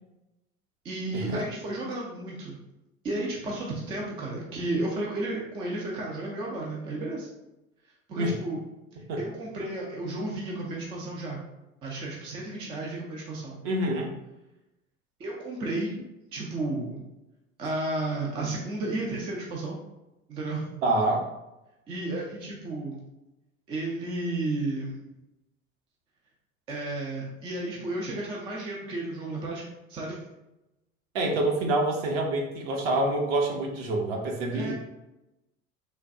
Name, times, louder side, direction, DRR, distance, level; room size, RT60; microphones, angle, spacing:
voice 1, 0.8-2.6 3.0-7.3 8.1-8.6 8.9-11.4 11.8-13.6 13.9-14.1 15.2-16.0 16.3-17.0 17.6-19.8 20.3-20.8 21.9-23.0 23.7-25.0 26.7-29.6 29.9-30.2 34.5-34.7, right 2 dB, 15° right, -3 dB, 0.4 m, -33 dB
voice 2, 13.6-14.1 20.8-21.3 31.1-34.7, right 2 dB, 45° right, 1 dB, 0.8 m, -26 dB
3.3 x 2.2 x 2.6 m, 0.95 s
figure-of-eight pair, 75°, 41 cm